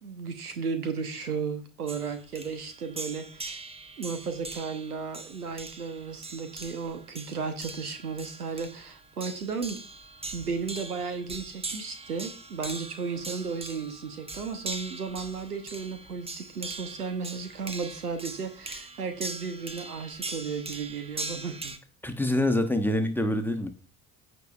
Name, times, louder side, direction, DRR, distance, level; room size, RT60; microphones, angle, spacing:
voice 1, 0.0-3.6 4.0-9.8 10.3-21.7, right 5 dB, 90° right, 9 dB, 1.0 m, -34 dB
sound 1, 1.9-21.8, right 3 dB, 15° right, 0.9 m, -41 dB
voice 2, 22.0-23.7, left 1 dB, 5° left, 6 dB, 1.1 m, -26 dB
14.5 x 4.9 x 2.4 m, 0.38 s
figure-of-eight pair, 55°, 44 cm